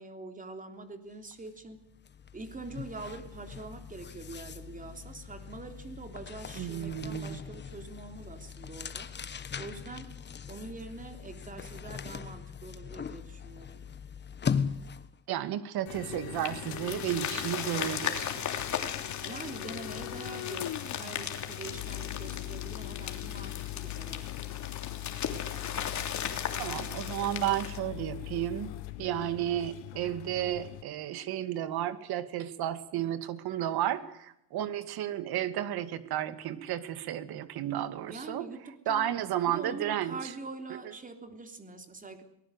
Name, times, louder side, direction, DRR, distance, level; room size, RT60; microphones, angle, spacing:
voice 1, 0.0-1.8 2.3-9.1 9.6-10.1 10.5-13.8 19.2-24.3 38.1-39.1 39.4-42.2, right 3 dB, 20° right, 6 dB, 3.4 m, -44 dB
sound 1, 1.3-1.5 1.8-15.2, left 6 dB, 25° left, 1.2 m, -39 dB
voice 2, 6.6-7.4 15.3-18.3 26.6-28.7 29.0-38.5 38.9-40.2, right 11 dB, 60° right, 11 dB, 2.2 m, -32 dB
sound 2, 15.9-30.8, left 17 dB, 75° left, 1.5 m, -41 dB
sound 3, 16.3-27.8, left 8 dB, 40° left, 3.3 m, -37 dB
23.0 x 20.0 x 8.1 m, 0.81 s
cardioid pair, 135°, 43 cm